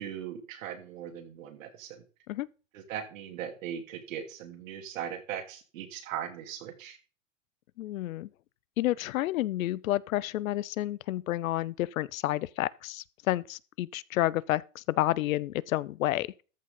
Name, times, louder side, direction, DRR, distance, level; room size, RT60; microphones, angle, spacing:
voice 1, 0.0-2.0 2.7-7.0, right 9 dB, 75° right, 2.9 m, -39 dB
voice 2, 7.8-8.3 8.8-16.4, left 15 dB, 90° left, 0.6 m, -30 dB
13.5 x 6.5 x 3.8 m
supercardioid pair, 135°, 39 cm